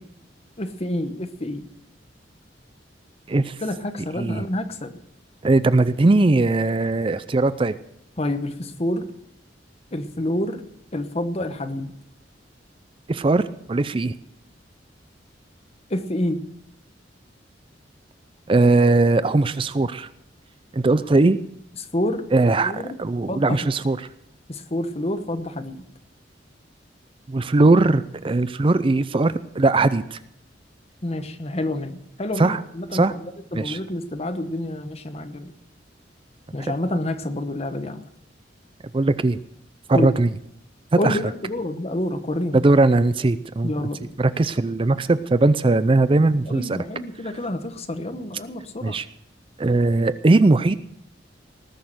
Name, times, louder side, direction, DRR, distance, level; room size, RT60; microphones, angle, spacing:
voice 1, 0.6-1.7 3.6-5.0 8.2-9.1 9.9-10.6 10.9-11.9 15.9-16.4 21.9-22.2 22.6-23.0 23.3-23.6 24.5-25.8 31.0-35.5 36.5-38.1 39.9-40.1 41.0-42.6 43.6-44.1 46.4-49.0, left 1 dB, 35° left, 8 dB, 1.2 m, -28 dB
voice 2, 3.3-3.6 4.2-4.4 5.4-7.7 13.1-14.1 18.5-20.1 20.7-21.4 22.3-24.0 27.3-30.2 32.4-32.6 32.9-33.1 33.5-33.8 38.9-39.4 39.9-40.3 41.0-41.2 42.5-43.9 44.2-46.8 48.8-49.1 49.6-50.7, right 2 dB, 30° right, 14 dB, 0.4 m, -19 dB
19.5 x 6.5 x 7.9 m, 0.74 s
head